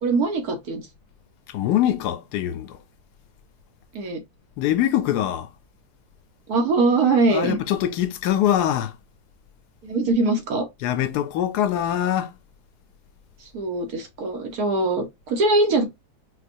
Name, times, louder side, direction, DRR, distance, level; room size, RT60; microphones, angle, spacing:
voice 1, 0.0-0.8 3.9-4.2 6.5-7.6 9.8-10.7 13.5-15.9, right 3 dB, 70° right, 1.4 m, -22 dB
voice 2, 1.5-2.8 4.6-5.5 7.3-8.9 10.8-12.3, left 11 dB, 85° left, 1.1 m, -23 dB
4.4 x 2.3 x 2.6 m
omnidirectional pair, 1.7 m